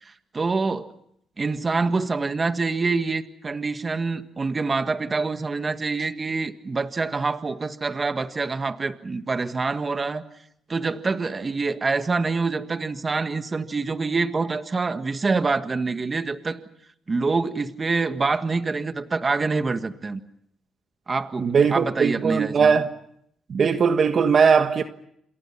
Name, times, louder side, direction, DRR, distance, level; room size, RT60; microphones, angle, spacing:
voice 1, 0.0-0.9 1.4-10.2 10.7-16.6 17.1-20.2 21.1-22.8, right 4 dB, 30° right, 1.7 m, -26 dB
voice 2, 21.4-22.9 23.5-24.8, right 6 dB, 50° right, 1.5 m, -19 dB
29.0 x 27.0 x 5.8 m
cardioid pair, 90°, 0 cm